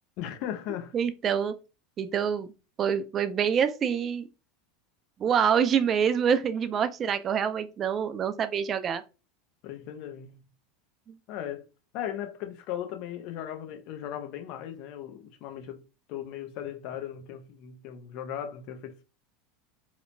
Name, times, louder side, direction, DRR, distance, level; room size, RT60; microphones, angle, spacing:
voice 1, 0.2-0.9 9.6-10.5 11.3-11.7 11.9-19.0, left 10 dB, 60° left, 0.5 m, -37 dB
voice 2, 0.9-1.5 2.0-2.5 2.8-4.3 5.2-9.0 11.1-11.2, right 7 dB, 35° right, 0.3 m, -26 dB
2.9 x 2.1 x 2.5 m
hypercardioid pair, 95°, 0 cm